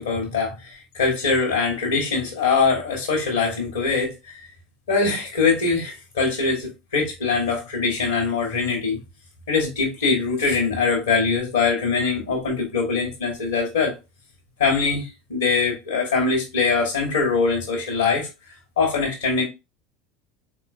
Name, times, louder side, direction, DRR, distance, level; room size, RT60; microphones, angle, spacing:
voice 1, 0.0-4.4 4.9-9.0 9.5-13.9 14.6-18.3 18.8-19.4, left 4 dB, 70° left, 1.3 m, -22 dB
3.9 x 3.6 x 2.5 m
figure-of-eight pair, 70°, 0 cm